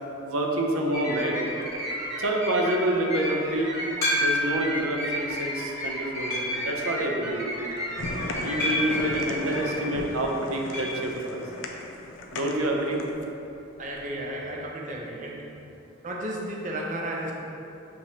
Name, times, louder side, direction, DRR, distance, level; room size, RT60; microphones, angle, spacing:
voice 1, 0.2-1.4 2.2-3.7 4.1-7.5 8.4-11.4 12.3-13.0, right 1 dB, 85° right, 0 dB, 0.6 m, -27 dB
sound 1, 0.9-9.7, equal, 15° right, 0.8 m, -33 dB
sound 2, 4.0-4.7 5.3-5.4 6.3-6.7 8.6-9.1 10.7-11.0 11.3-11.4 11.6-11.7 13.7-13.8, left 1 dB, 15° left, 1.3 m, -27 dB
sound 3, 8.0-13.2, left 2 dB, 65° left, 0.4 m, -36 dB
voice 2, 13.8-15.4 16.0-17.3, right 1 dB, 35° right, -1 dB, 0.5 m, -33 dB
6.3 x 3.0 x 2.8 m, 2.8 s
head